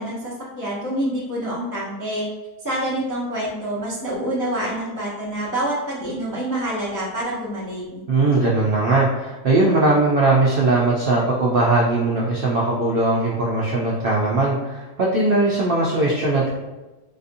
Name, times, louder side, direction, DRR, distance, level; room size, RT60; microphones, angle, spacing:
voice 1, 0.0-2.3 2.6-8.0, right 1 dB, 30° left, -7 dB, 0.3 m, -27 dB
voice 2, 8.1-16.5, right 2 dB, 70° right, -4 dB, 0.5 m, -19 dB
4.0 x 2.6 x 2.6 m, 1.1 s
omnidirectional pair, 1.5 m